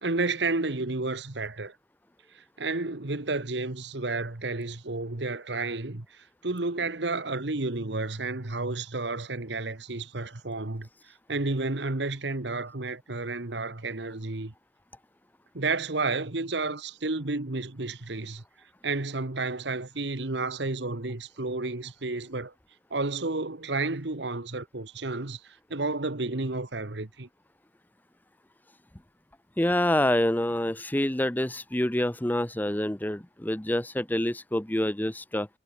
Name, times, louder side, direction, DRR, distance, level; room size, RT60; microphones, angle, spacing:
voice 1, 0.0-1.7 2.3-10.9 11.3-14.5 15.5-18.4 18.8-22.5 22.9-27.3, right 3 dB, 70° right, 1.5 m, -31 dB
voice 2, 29.6-35.5, left 1 dB, 10° left, 0.7 m, -27 dB
head